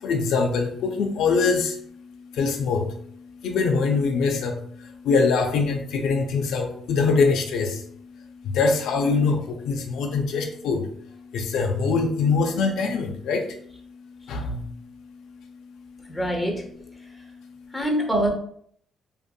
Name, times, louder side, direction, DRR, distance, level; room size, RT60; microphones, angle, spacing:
voice 1, 0.0-16.2 17.0-17.8, left 4 dB, 80° left, 3 dB, 0.3 m, -25 dB
voice 2, 16.1-16.5 17.7-18.3, equal, 10° left, 1 dB, 0.7 m, -23 dB
2.6 x 2.6 x 2.2 m, 0.63 s
cardioid pair, 90°, 0 cm